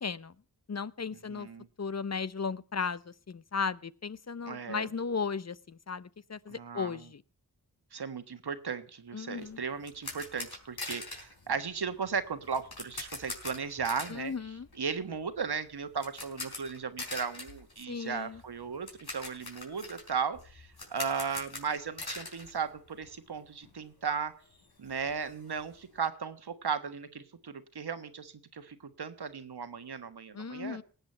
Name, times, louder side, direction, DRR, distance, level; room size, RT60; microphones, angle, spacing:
voice 1, 0.0-0.3 0.7-1.5 1.8-7.2 9.1-9.6 14.1-14.7 17.9-18.4 30.3-30.8, left 5 dB, 40° left, 18 dB, 0.7 m, -36 dB
voice 2, 1.3-1.7 4.4-4.9 6.5-6.9 7.9-14.3 14.8-24.3 24.8-30.8, right 6 dB, 75° right, 10 dB, 1.4 m, -36 dB
sound 1, 9.4-23.4 23.6-23.8 24.2-24.3 24.5-26.1, left 3 dB, 70° left, 5.0 m, -44 dB
18.5 x 8.0 x 4.4 m, 0.40 s
cardioid pair, 40°, 39 cm